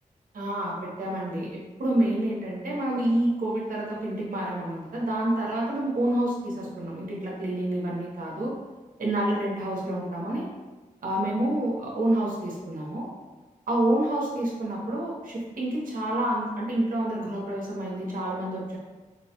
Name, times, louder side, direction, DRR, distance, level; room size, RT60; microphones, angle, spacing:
voice 1, 0.3-8.5 9.0-10.5 11.0-13.1 13.7-18.8, right 1 dB, 80° right, -4 dB, 0.8 m, -28 dB
4.3 x 2.1 x 2.8 m, 1.2 s
wide cardioid pair, 85°, 14 cm